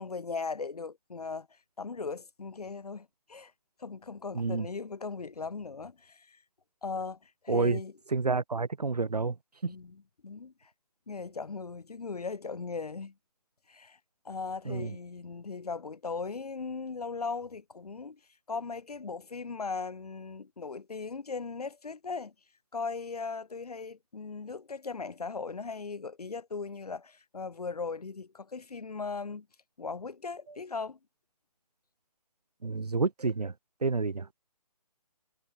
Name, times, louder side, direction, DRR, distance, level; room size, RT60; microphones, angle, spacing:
voice 1, 0.0-1.5 1.8-3.5 3.8-6.4 6.8-7.9 9.6-10.7 11.1-13.1 13.7-14.0 14.3-18.2 18.5-22.3 22.7-29.5 29.8-31.0, left 4 dB, 75° left, 3.7 m, -38 dB
voice 2, 4.3-4.7 7.5-7.8 8.1-9.4 9.6-9.7 14.6-14.9 32.6-33.5 33.8-34.3, right 4 dB, 85° right, 3.4 m, -29 dB
hypercardioid pair, 160°, 20 cm